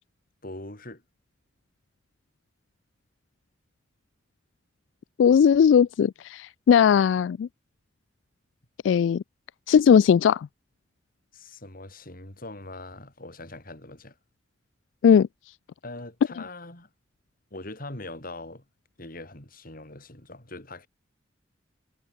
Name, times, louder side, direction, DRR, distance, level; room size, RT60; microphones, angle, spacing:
voice 1, 0.4-1.0 11.3-14.1 15.8-16.9 17.5-18.6 19.0-20.9, left 2 dB, 50° left, 5.1 m, -41 dB
voice 2, 5.2-7.5 8.8-9.2 9.7-10.5 15.0-15.3, left 7 dB, 80° left, 0.3 m, -18 dB
head